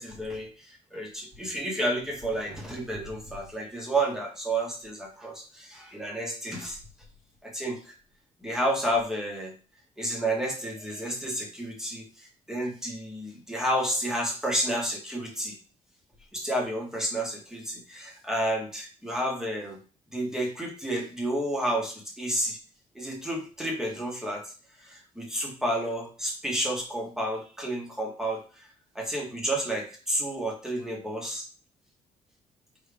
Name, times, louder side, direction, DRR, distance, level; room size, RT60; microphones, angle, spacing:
voice 1, 0.0-6.8 7.4-7.9 8.4-9.5 10.0-15.6 16.3-19.8 20.1-22.6 22.9-24.5 24.8-28.7 28.9-31.4, right 1 dB, 5° right, 0 dB, 1.1 m, -31 dB
4.7 x 3.1 x 3.3 m, 0.36 s
cardioid pair, 165°, 13 cm